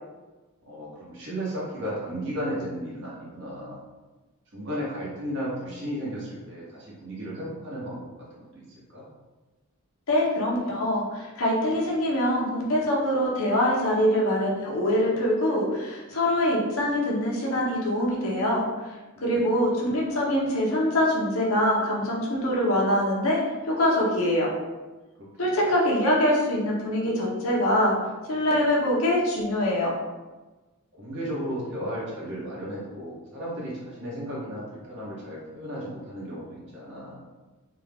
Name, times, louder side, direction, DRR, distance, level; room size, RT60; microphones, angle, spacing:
voice 1, 0.6-3.8 4.5-9.1 19.1-19.6 25.2-25.6 30.9-37.2, equal, 60° right, -6 dB, 1.3 m, -35 dB
voice 2, 10.1-18.6 19.2-24.5 25.4-27.9 28.3-29.9, left 1 dB, 70° left, -3 dB, 0.9 m, -24 dB
3.6 x 2.4 x 3.4 m, 1.2 s
head